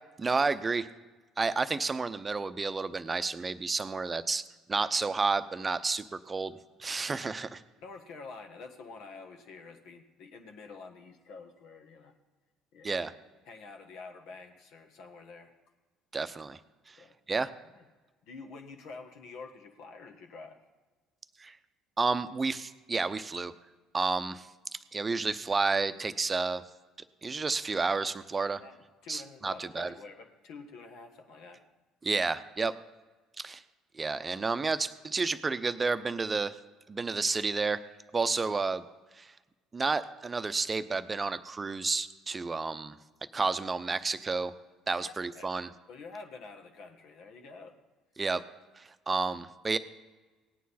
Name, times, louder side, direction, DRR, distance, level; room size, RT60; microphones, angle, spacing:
voice 1, 0.2-0.9 1.4-4.4 4.7-6.5 6.8-7.6 12.8-13.1 16.1-16.6 16.9-17.0 17.3-17.5 21.4-21.6 22.0-23.5 23.9-24.5 24.9-26.6 27.2-28.6 29.1-29.9 32.0-32.8 33.4-33.6 33.9-36.6 36.9-37.8 38.1-38.8 39.2-39.3 39.7-43.0 43.3-44.5 44.9-45.7 48.2-48.4 48.8-49.8, right 4 dB, 25° right, 12 dB, 0.7 m, -30 dB
voice 2, 7.8-12.2 12.7-13.2 13.4-15.5 17.0-17.2 17.5-17.9 18.2-20.6 28.6-31.6 45.0-45.5 45.9-47.8, left 4 dB, 65° left, 4 dB, 1.4 m, -48 dB
17.5 x 9.3 x 4.2 m, 1.3 s
hypercardioid pair, 60°, 0 cm